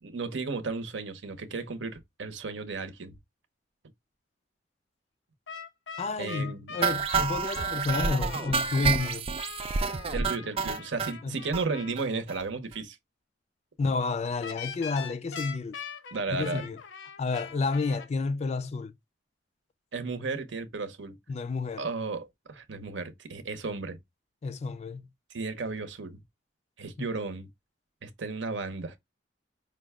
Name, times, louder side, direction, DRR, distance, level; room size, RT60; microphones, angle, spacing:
voice 1, 0.0-3.2 6.2-6.7 10.1-13.0 16.1-16.7 19.9-21.2 21.8-24.0 25.3-26.2 26.8-27.5 28.0-29.0, right 3 dB, 85° right, 0.8 m, -34 dB
sound 1, 5.5-11.9 14.4-18.1, left 6 dB, 80° left, 0.7 m, -42 dB
voice 2, 6.0-9.3 11.2-11.3 13.8-15.8 16.3-16.8 17.2-18.9 21.3-21.8 24.4-25.0 27.0-27.1, left 3 dB, 35° left, 0.3 m, -30 dB
sound 2, 6.8-11.1 11.5-11.6 12.0-12.1 12.3-12.4 12.7-12.8, right 5 dB, 30° right, 0.4 m, -29 dB
5.1 x 2.2 x 3.5 m
head